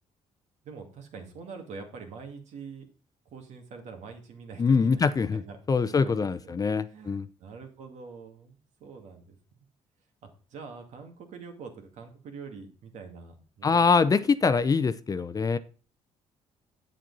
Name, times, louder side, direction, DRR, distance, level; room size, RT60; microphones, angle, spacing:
voice 1, 0.6-2.9 3.3-5.6 5.9-6.5 6.9-9.7 10.2-13.9, right 5 dB, 70° right, 4 dB, 2.2 m, -45 dB
voice 2, 4.6-5.4 5.7-7.3 13.6-15.6, left 5 dB, 30° left, 13 dB, 0.6 m, -24 dB
8.1 x 7.5 x 4.0 m, 0.37 s
cardioid pair, 100°, 12 cm